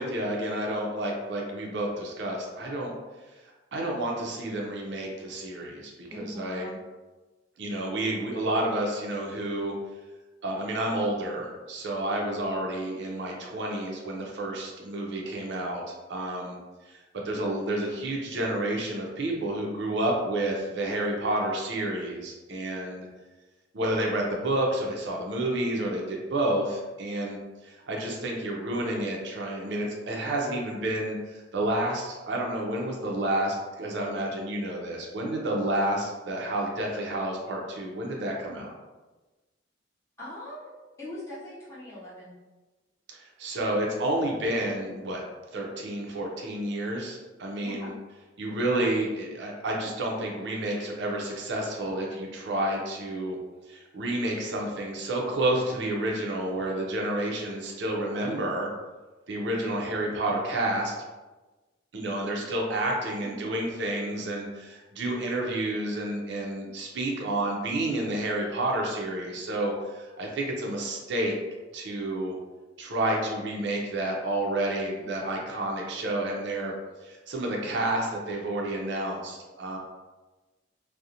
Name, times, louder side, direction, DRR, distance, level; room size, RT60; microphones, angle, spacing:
voice 1, 0.0-2.9 3.7-6.7 7.6-9.7 10.4-15.8 16.1-16.6 16.8-23.1 23.7-38.7 43.1-45.2 45.5-47.9 48.4-53.4 53.7-58.7 59.3-60.9 61.9-71.3 71.7-72.3 72.8-76.7 77.0-79.8, right 1 dB, 65° right, -1 dB, 0.5 m, -30 dB
voice 2, 6.1-6.8 40.2-40.7 41.0-42.3 47.6-48.0 63.2-63.7, left 1 dB, 15° left, -11 dB, 0.8 m, -41 dB
2.4 x 2.0 x 2.7 m, 1.2 s
head